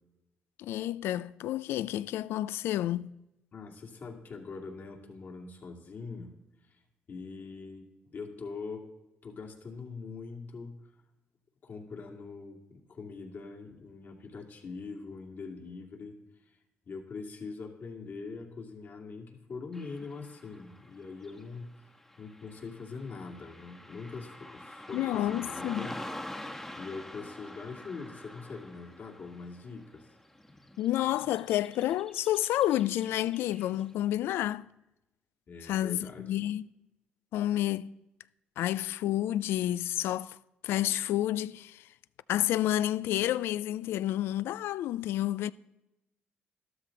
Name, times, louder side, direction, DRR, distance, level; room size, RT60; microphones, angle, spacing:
voice 1, 0.6-3.1 24.9-25.9 30.8-34.7 35.6-36.6 37.3-37.9 38.6-40.4 40.6-41.9 42.3-45.5, left 13 dB, 85° left, 0.3 m, -30 dB
voice 2, 3.5-6.3 6.6-6.8 7.1-8.8 9.2-10.9 11.6-16.1 16.4-16.6 16.9-21.8 22.2-26.0 26.8-30.1 35.5-36.4, left 4 dB, 60° left, 2.5 m, -43 dB
Car passing by / Traffic noise roadway noise, 19.7-34.0, left 1 dB, 10° left, 1.1 m, -47 dB
12.5 x 12.5 x 3.9 m
supercardioid pair, 70°, 4 cm